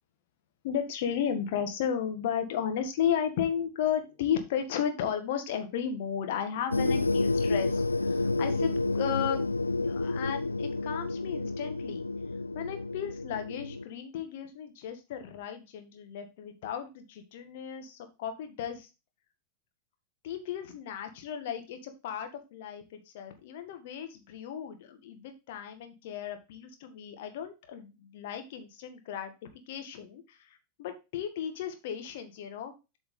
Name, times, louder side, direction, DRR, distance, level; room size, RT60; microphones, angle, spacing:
voice 1, 0.6-9.4 9.8-12.0 12.5-18.9 20.2-32.7, left 8 dB, 55° left, 7 dB, 1.6 m, -34 dB
sound 1, 6.7-13.8, left 3 dB, 80° left, 0.4 m, -30 dB
8.1 x 5.0 x 3.7 m, 0.27 s
figure-of-eight pair, 90°, 0 cm